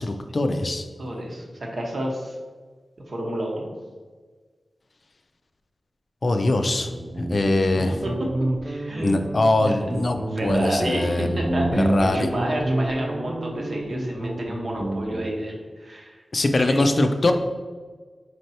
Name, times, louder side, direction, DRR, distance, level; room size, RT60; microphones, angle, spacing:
voice 1, 0.0-0.8 6.2-6.9 7.2-7.9 9.0-11.4 11.7-12.3 16.3-17.3, left 2 dB, 55° left, 6 dB, 0.3 m, -22 dB
voice 2, 0.6-2.4 3.1-3.7 8.0-8.1 8.6-9.2 9.6-10.0 10.3-16.2 16.5-16.9, right 1 dB, 70° right, -1 dB, 0.8 m, -30 dB
Guitar, 6.8-15.3, right 1 dB, 30° right, 0.4 m, -28 dB
4.3 x 3.2 x 2.7 m, 1.5 s
cardioid pair, 60°, 0 cm